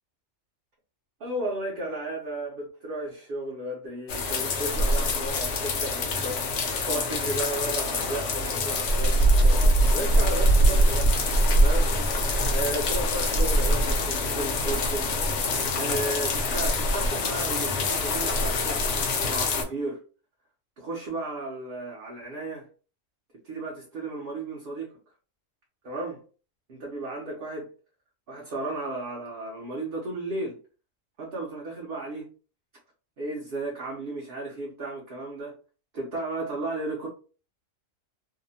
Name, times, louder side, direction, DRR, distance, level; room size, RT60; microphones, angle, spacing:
voice 1, 1.2-6.4 6.9-11.1 11.6-11.9 12.5-15.1 15.7-18.8 19.2-20.0 20.8-22.7 23.4-24.9 25.8-26.2 26.7-27.7 28.3-30.6 31.2-32.3 33.2-35.5 35.9-37.1, right 2 dB, 50° right, 0.7 m, -34 dB
sound 1, 4.1-19.6, equal, 60° left, 0.8 m, -24 dB
2.7 x 2.1 x 2.6 m
omnidirectional pair, 1.4 m